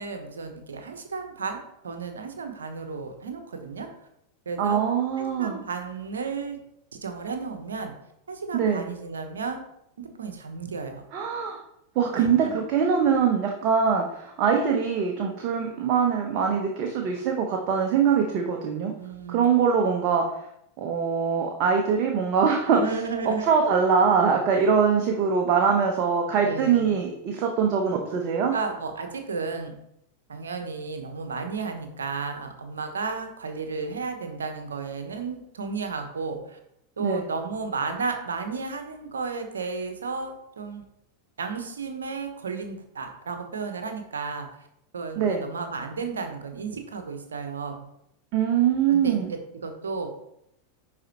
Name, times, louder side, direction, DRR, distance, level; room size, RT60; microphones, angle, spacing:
voice 1, 0.0-3.9 4.5-4.8 5.2-6.6 6.9-7.9 8.3-9.6 10.0-11.0 12.1-12.5 19.0-19.5 22.7-23.6 26.4-27.0 28.5-29.7 30.3-36.6 37.0-40.8 41.4-44.5 44.9-47.9 48.9-50.1, right 4 dB, 70° right, 6 dB, 1.0 m, -33 dB
voice 2, 4.6-5.6 8.5-8.8 11.1-11.6 11.9-18.9 19.3-20.3 20.8-22.8 23.5-28.5 37.0-37.2 45.2-45.4 48.3-49.3, right 6 dB, 40° right, 2 dB, 0.9 m, -23 dB
10.0 x 4.2 x 2.9 m, 0.77 s
figure-of-eight pair, 90°, 0 cm